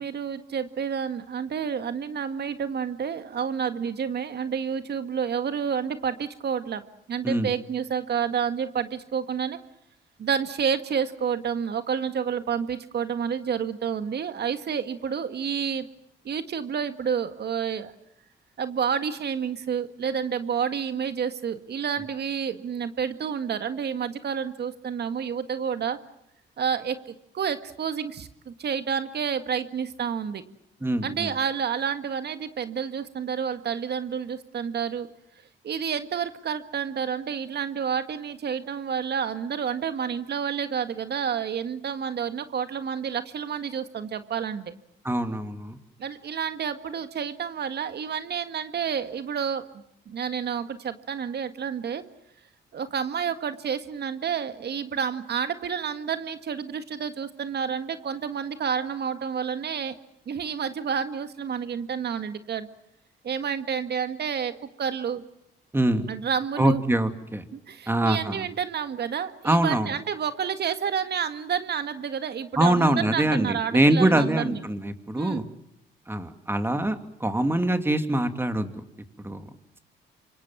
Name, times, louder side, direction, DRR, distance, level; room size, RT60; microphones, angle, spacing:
voice 1, 0.0-6.8 7.1-9.6 10.2-15.9 16.3-17.9 18.6-26.0 26.6-30.4 31.0-35.1 35.6-44.7 46.0-49.6 50.1-52.0 52.7-59.9 60.3-62.7 63.2-64.5 64.8-65.2 66.1-66.8 67.5-74.6 75.1-75.4, right 7 dB, 55° right, 9 dB, 1.8 m, -29 dB
voice 2, 30.8-31.3 45.0-45.8 65.7-66.1 66.6-67.4 67.9-68.5 69.4-69.9 72.6-75.4 76.1-78.7 79.2-79.5, right 1 dB, 10° right, 8 dB, 2.6 m, -24 dB
27.0 x 24.5 x 7.4 m, 0.77 s
cardioid pair, 90°, 20 cm